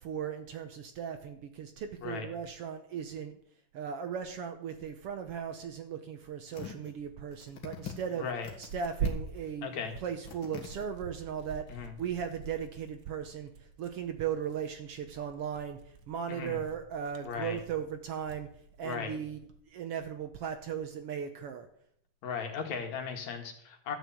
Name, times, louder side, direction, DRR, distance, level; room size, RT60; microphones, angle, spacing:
voice 1, 0.0-3.3 3.7-8.3 8.6-13.5 13.8-15.8 16.1-18.5 18.8-19.4 19.7-21.7, right 8 dB, 65° right, 7 dB, 1.6 m, -37 dB
sound 1, 6.5-6.9 7.3-8.7 9.0-9.5 9.9-10.0 10.3-10.8 11.4-11.5, left 8 dB, 50° left, 2.2 m, -44 dB
Tearing, 7.0-19.6, right 6 dB, 50° right, 1.6 m, -44 dB
voice 2, 9.6-9.9 11.7-11.9 16.3-16.6 17.2-17.6 18.8-19.1 22.2-24.0, left 6 dB, 75° left, 4 dB, 3.0 m, -37 dB
13.0 x 6.1 x 8.4 m, 0.67 s
omnidirectional pair, 3.3 m